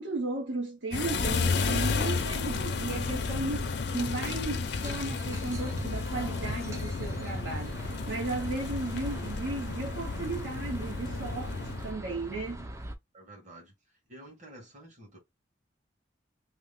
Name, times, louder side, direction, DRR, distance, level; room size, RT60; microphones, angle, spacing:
voice 1, 0.0-3.7 3.9-12.7, right 2 dB, 75° right, 1.0 m, -35 dB
sound 1, 0.9-11.9, left 4 dB, 60° left, 0.5 m, -32 dB
sound 2, 4.8-13.0, right 1 dB, 15° right, 0.4 m, -41 dB
voice 2, 13.1-13.7 14.1-15.2, right 1 dB, 40° right, 1.5 m, -50 dB
3.1 x 2.1 x 3.5 m
head